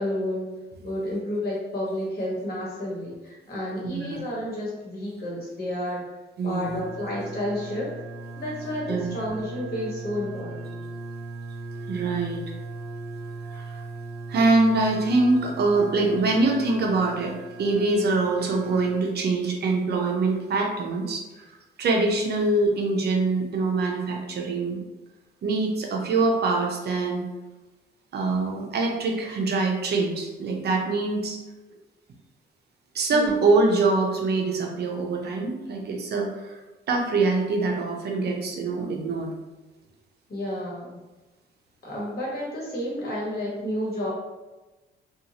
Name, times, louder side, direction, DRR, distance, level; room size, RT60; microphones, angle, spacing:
voice 1, 0.0-6.0 6.4-7.9 8.4-10.7 33.1-33.4 40.3-41.0 41.8-44.1, left 1 dB, 50° left, -5 dB, 1.2 m, -31 dB
voice 2, 3.8-4.2 6.4-6.8 8.9-9.1 11.9-12.4 13.5-13.8 14.3-24.8 25.4-27.3 28.1-31.4 32.9-36.6 36.9-39.3, right 3 dB, 55° right, 0 dB, 0.6 m, -24 dB
sound 1, 6.6-19.0, right 3 dB, 5° left, 0.6 m, -38 dB
2.6 x 2.4 x 2.8 m, 1.2 s
cardioid pair, 90°, 20 cm